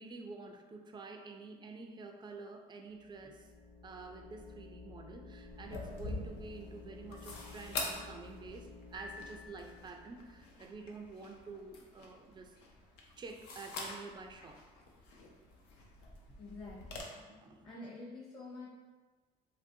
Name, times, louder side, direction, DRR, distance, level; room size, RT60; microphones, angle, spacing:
voice 1, 0.0-3.5 3.8-12.5 13.2-14.6 17.1-17.7, right 4 dB, 25° right, 4 dB, 0.3 m, -49 dB
sound 1, 2.9-10.6, left 3 dB, 50° left, 0.9 m, -53 dB
sound 2, 5.5-17.0, left 3 dB, 85° left, 0.6 m, -46 dB
Piano, 8.9-10.2, left 3 dB, 75° right, 0.6 m, -51 dB
voice 2, 16.4-17.1 17.6-18.7, left 2 dB, 25° left, -6 dB, 0.7 m, -47 dB
3.0 x 2.5 x 2.6 m, 1.3 s
cardioid pair, 110°, 17 cm